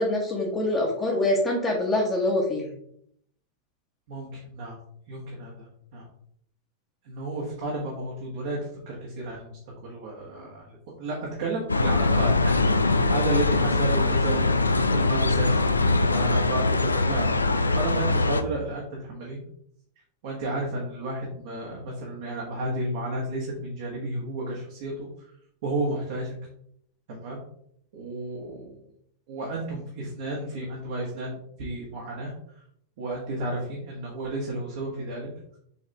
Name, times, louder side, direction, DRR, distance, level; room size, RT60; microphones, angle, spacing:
voice 1, 0.0-2.7, left 1 dB, 20° left, -3 dB, 1.4 m, -25 dB
voice 2, 4.1-4.8 5.1-6.0 7.0-8.6 8.8-17.5 17.7-19.4 20.2-25.1 25.6-26.3 27.1-27.4 27.9-28.8 29.3-32.3 33.0-35.3, right 2 dB, 50° right, -2 dB, 1.6 m, -32 dB
sound 1, 11.7-18.4, left 2 dB, 80° left, 0.4 m, -22 dB
7.1 x 4.0 x 3.5 m, 0.68 s
figure-of-eight pair, 90°, 0 cm